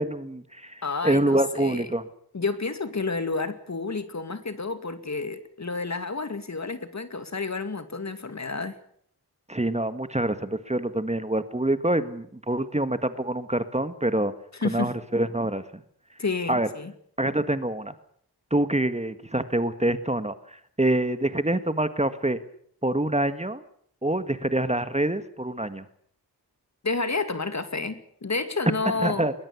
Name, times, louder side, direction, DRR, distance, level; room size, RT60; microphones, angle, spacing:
voice 1, 0.0-2.0 9.5-14.3 14.6-15.6 16.5-16.7 17.2-17.9 18.5-22.4 22.8-23.6 24.0-25.8 29.0-29.3, right 1 dB, 15° right, 11 dB, 1.8 m, -26 dB
voice 2, 0.8-1.9 2.3-8.7 14.5-14.9 16.2-16.9 26.8-29.3, left 4 dB, 45° left, 10 dB, 2.4 m, -30 dB
21.0 x 20.5 x 8.4 m, 0.64 s
cardioid pair, 60°, 40 cm